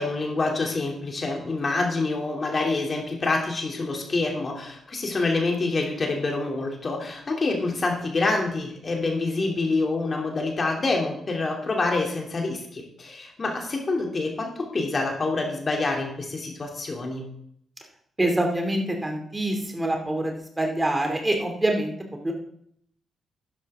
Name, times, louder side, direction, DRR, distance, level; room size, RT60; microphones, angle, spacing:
voice 1, 0.0-17.3, left 3 dB, 45° left, 1 dB, 3.0 m, -27 dB
voice 2, 18.2-21.9 22.2-22.3, right 1 dB, 20° right, 2 dB, 2.7 m, -25 dB
11.5 x 10.0 x 3.7 m, 0.69 s
hypercardioid pair, 45°, 0 cm